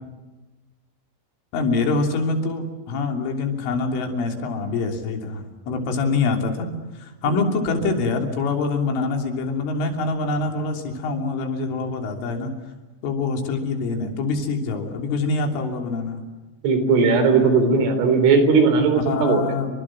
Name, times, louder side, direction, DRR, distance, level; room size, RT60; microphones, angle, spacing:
voice 1, 1.5-6.7 7.0-12.5 13.0-16.2 18.8-19.8, left 3 dB, 70° left, 3 dB, 5.5 m, -25 dB
voice 2, 16.6-19.4, right 4 dB, 70° right, 8 dB, 6.1 m, -18 dB
29.5 x 25.0 x 7.5 m, 1.2 s
omnidirectional pair, 6.0 m